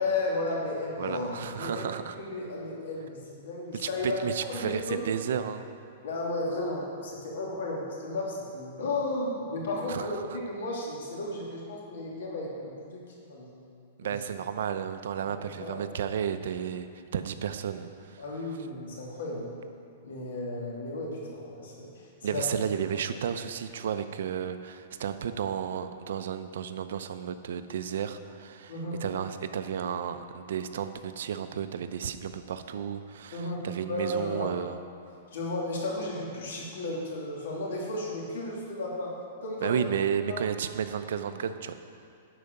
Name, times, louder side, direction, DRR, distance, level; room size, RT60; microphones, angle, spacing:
voice 1, 0.0-1.9 2.2-5.1 6.0-13.5 14.0-14.2 15.3-15.8 18.2-19.5 20.0-22.5 28.7-29.0 33.3-34.6 35.3-39.2 39.4-39.8 40.3-40.5, left 2 dB, 80° left, -3 dB, 2.6 m, -34 dB
voice 2, 1.0-2.2 3.7-5.6 9.9-10.2 14.0-18.2 22.2-28.7 29.0-34.8 39.6-41.7, right 8 dB, 70° right, 10 dB, 0.6 m, -32 dB
11.0 x 4.8 x 6.7 m, 2.4 s
hypercardioid pair, 160°, 0 cm